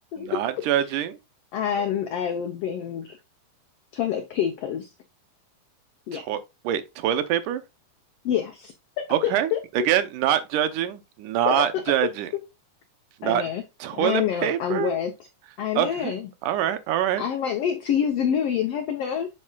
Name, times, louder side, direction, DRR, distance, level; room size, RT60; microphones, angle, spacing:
voice 1, 0.2-1.2 6.1-6.4 6.6-7.6 9.1-9.5 9.9-12.3 13.2-13.4 13.8-14.9 15.8-16.1 16.4-17.2, right 11 dB, 80° right, 2.3 m, -25 dB
voice 2, 1.5-3.2 3.9-4.9 6.1-6.2 8.2-9.6 11.5-11.7 13.2-13.6 13.9-15.1 15.6-16.3 17.2-19.3, left 9 dB, 80° left, 1.4 m, -27 dB
7.7 x 6.4 x 2.3 m
omnidirectional pair, 3.8 m